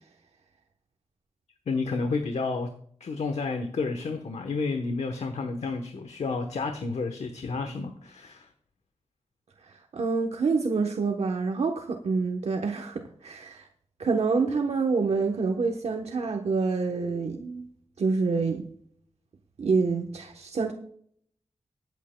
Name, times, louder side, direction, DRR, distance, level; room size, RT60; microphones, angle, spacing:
voice 1, 1.7-2.7 3.0-8.5, left 4 dB, 75° left, 6 dB, 1.0 m, -30 dB
voice 2, 9.6-13.7 14.0-17.7 18.0-18.7 19.6-20.7, right 4 dB, 70° right, 2 dB, 1.0 m, -27 dB
22.5 x 8.3 x 2.2 m, 0.63 s
wide cardioid pair, 115°, 11 cm